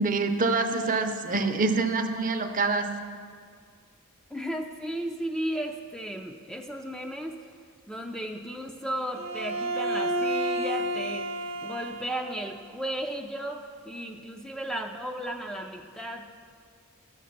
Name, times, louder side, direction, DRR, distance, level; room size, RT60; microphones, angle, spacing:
voice 1, 0.0-2.9, right 3 dB, 40° right, 7 dB, 0.7 m, -26 dB
voice 2, 4.3-7.5 7.9-11.3 11.6-16.3, right 1 dB, 5° left, 2 dB, 0.4 m, -35 dB
Bowed string instrument, 9.1-12.6, right 1 dB, 60° right, 1.0 m, -30 dB
12.0 x 7.3 x 5.8 m, 2.1 s
head